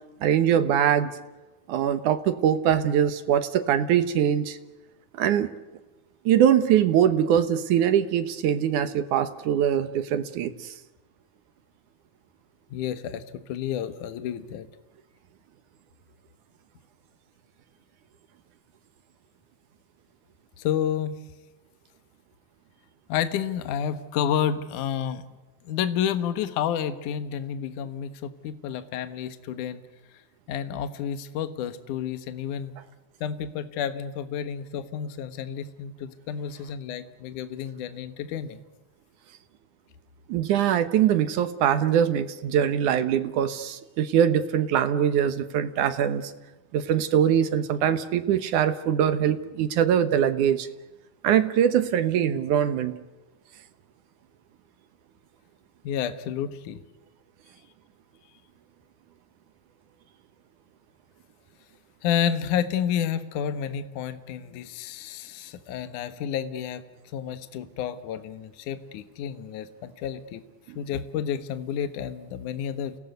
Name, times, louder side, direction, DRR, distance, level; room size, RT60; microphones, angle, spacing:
voice 1, 0.2-1.1 1.7-4.6 5.1-5.5 6.3-10.7 40.3-46.3 46.7-50.7 51.2-53.0 70.7-70.8, right 9 dB, 65° right, 11 dB, 2.3 m, -22 dB
voice 2, 12.7-14.7 20.6-21.2 23.1-25.2 25.7-29.8 30.5-32.8 33.2-38.6 55.8-56.8 62.0-66.8 67.1-70.4 70.8-73.0, left 9 dB, 65° left, 11 dB, 2.5 m, -30 dB
29.5 x 18.0 x 8.2 m, 1.2 s
omnidirectional pair, 4.5 m